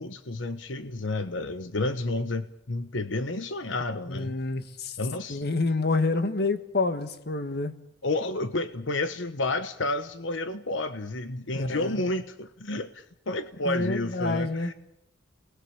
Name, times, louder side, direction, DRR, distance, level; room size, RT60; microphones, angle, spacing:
voice 1, 0.0-4.3 5.0-5.4 8.0-14.7, left 2 dB, 85° left, 1.2 m, -30 dB
voice 2, 4.1-5.0 5.3-7.8 11.5-12.0 13.7-14.7, left 3 dB, 60° left, 1.7 m, -28 dB
29.5 x 20.5 x 7.2 m
head